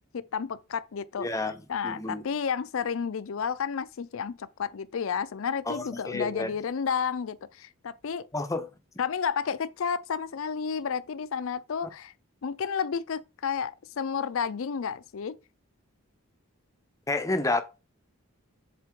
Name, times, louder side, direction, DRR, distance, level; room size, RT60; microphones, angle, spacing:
voice 1, 0.1-8.3 9.0-12.1 12.4-15.4, left 6 dB, 65° left, 0.4 m, -31 dB
voice 2, 1.2-1.6 1.8-2.2 5.7-6.6 8.3-8.7 17.1-17.6, left 2 dB, 15° left, 0.6 m, -29 dB
7.5 x 4.2 x 3.7 m
head